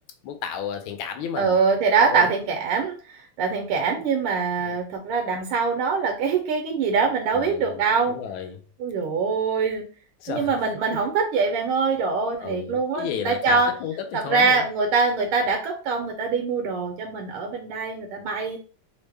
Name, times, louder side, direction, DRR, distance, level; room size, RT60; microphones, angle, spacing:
voice 1, 0.2-1.6 2.0-2.3 3.7-3.8 4.6-4.8 7.3-8.6 10.2-11.0 12.4-14.6, left 8 dB, 75° left, 1.3 m, -33 dB
voice 2, 1.4-8.2 8.8-9.9 10.3-13.7 14.1-18.6, right 5 dB, 80° right, 1.4 m, -23 dB
3.5 x 2.1 x 3.2 m
omnidirectional pair, 2.4 m